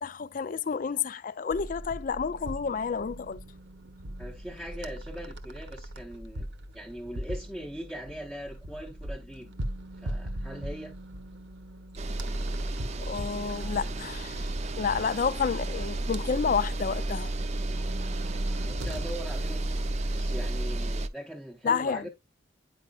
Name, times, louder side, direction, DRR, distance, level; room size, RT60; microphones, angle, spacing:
voice 1, 0.0-3.4 13.0-17.3 21.6-22.1, left 6 dB, 40° left, 0.3 m, -30 dB
sound 1, 1.5-20.8, equal, 55° right, 0.9 m, -41 dB
voice 2, 4.2-6.5 6.7-9.5 10.0-11.0 18.6-22.1, equal, ahead, 0.7 m, -41 dB
sound 2, 12.0-21.1, right 2 dB, 30° right, 0.4 m, -32 dB
9.2 x 4.9 x 2.4 m
head